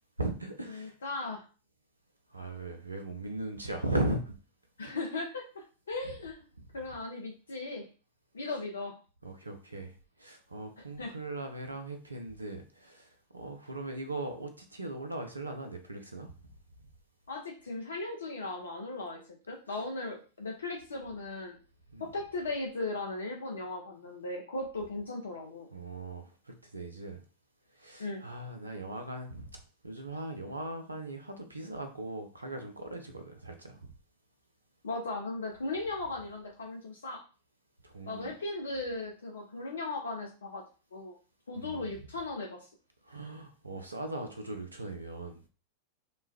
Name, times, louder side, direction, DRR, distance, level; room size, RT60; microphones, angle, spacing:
voice 1, 0.2-0.9 2.3-4.3 4.9-5.0 9.2-16.3 21.9-22.1 25.7-27.2 27.7-33.8 37.8-38.3 41.6-41.9 43.0-45.4, right 2 dB, 80° right, 6 dB, 0.5 m, -38 dB
voice 2, 0.7-1.4 4.8-6.5 6.7-7.9 8.3-8.9 11.0-11.2 17.3-21.6 22.0-25.7 28.0-28.2 34.8-37.2 38.1-40.6 40.9-41.1 41.5-42.7, left 2 dB, 70° left, 1 dB, 0.4 m, -37 dB
3.0 x 2.2 x 2.3 m, 0.36 s
figure-of-eight pair, 90°, 0 cm